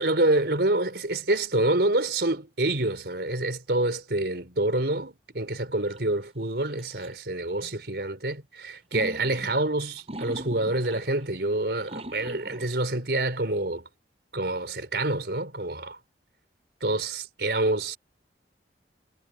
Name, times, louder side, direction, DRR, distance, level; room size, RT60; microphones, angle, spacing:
voice 1, 0.0-13.8 14.3-16.0 16.8-18.0, right 2 dB, 65° right, 4.3 m, -27 dB
sound 1, 5.8-6.0 6.7-7.1 7.5-7.7 8.9-11.4 11.8-12.8, right 1 dB, 35° right, 7.1 m, -41 dB
head